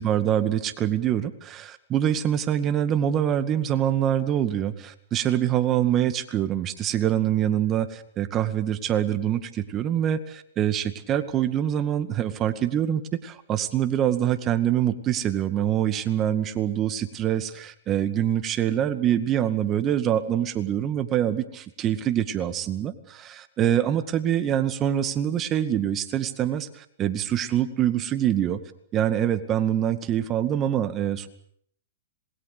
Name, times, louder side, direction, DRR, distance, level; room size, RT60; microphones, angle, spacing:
voice 1, 0.0-28.6 28.9-31.3, right 10 dB, 25° right, 10 dB, 2.1 m, -25 dB
27.0 x 21.5 x 6.8 m, 0.67 s
hypercardioid pair, 130°, 0 cm